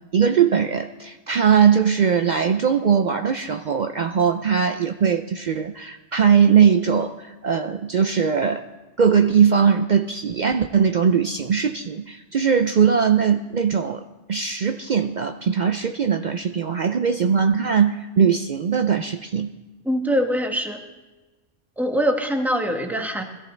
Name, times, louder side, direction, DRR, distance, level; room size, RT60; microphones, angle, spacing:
voice 1, 0.1-8.6 9.0-14.0 14.3-19.5, right 7 dB, 55° right, 7 dB, 0.5 m, -20 dB
voice 2, 19.8-20.8 21.8-23.2, equal, ahead, 4 dB, 1.1 m, -23 dB
21.0 x 14.0 x 3.3 m, 1.2 s
omnidirectional pair, 1.2 m